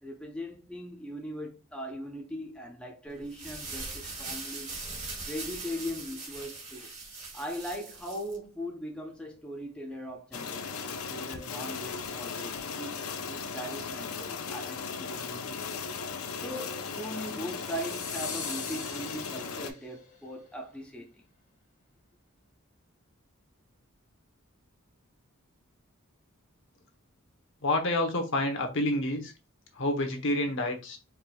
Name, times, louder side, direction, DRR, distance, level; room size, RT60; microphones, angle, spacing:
voice 1, 0.0-4.8 5.3-6.9 7.3-15.8 16.4-21.1, equal, 5° left, 0.6 m, -40 dB
sound 1, 3.2-8.4, right 3 dB, 35° right, 1.7 m, -40 dB
sound 2, 10.3-19.7, left 5 dB, 90° left, 0.6 m, -37 dB
sound 3, 17.5-19.9, left 5 dB, 35° left, 0.9 m, -41 dB
voice 2, 27.6-29.3 29.7-31.0, left 1 dB, 60° left, 1.0 m, -28 dB
4.6 x 3.4 x 2.3 m
head